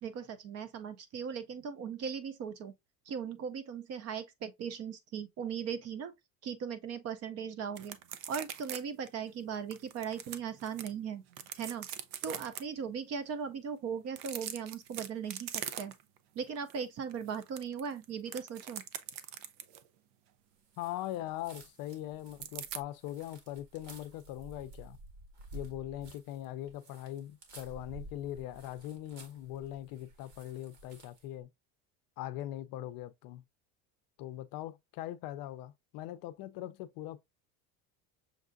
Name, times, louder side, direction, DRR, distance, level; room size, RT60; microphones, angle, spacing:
voice 1, 0.0-2.7 3.1-6.1 6.4-8.0 8.3-11.2 11.5-11.9 12.2-15.9 16.4-18.8, right 7 dB, 35° right, 0.5 m, -38 dB
sound 1, 7.8-8.8 9.1-9.2 9.7-10.9 11.3-12.6 14.1-16.2 16.6-16.8 17.1-19.9 22.4-22.8, right 10 dB, 85° right, 0.7 m, -42 dB
sound 2, 20.7-31.3, right 2 dB, 65° right, 1.6 m, -53 dB
voice 2, 20.8-25.0 25.5-31.5 32.2-33.4 34.2-37.2, left 13 dB, 55° left, 0.5 m, -41 dB
6.4 x 2.4 x 2.5 m
cardioid pair, 130°, 43 cm